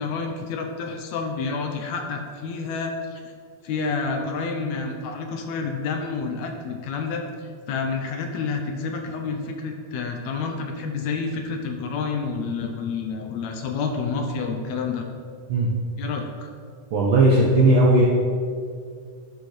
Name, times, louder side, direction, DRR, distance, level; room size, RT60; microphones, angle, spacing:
voice 1, 0.0-3.2 3.6-15.1 16.0-16.5, left 4 dB, 75° left, 3 dB, 1.9 m, -29 dB
voice 2, 16.9-18.0, right 2 dB, 70° right, -3 dB, 1.2 m, -17 dB
11.5 x 6.5 x 3.2 m, 2.2 s
omnidirectional pair, 3.4 m